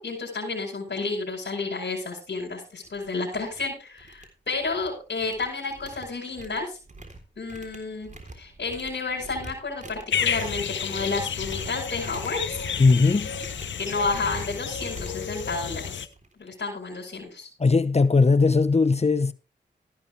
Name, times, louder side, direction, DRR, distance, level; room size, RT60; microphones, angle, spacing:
voice 1, 0.0-6.8 7.4-8.1 8.4-12.6 13.8-16.0 16.4-17.5, left 3 dB, 70° left, 5.1 m, -31 dB
sound 1, 2.3-2.4 2.8-3.1 3.3-3.7 4.0-4.9 5.2-16.4, right 2 dB, 40° right, 3.7 m, -44 dB
sound 2, 10.1-16.1, left 7 dB, 85° left, 0.9 m, -31 dB
voice 2, 12.8-13.3 17.6-19.3, left 4 dB, 35° left, 0.9 m, -19 dB
14.0 x 11.0 x 3.3 m
cardioid pair, 40°, 19 cm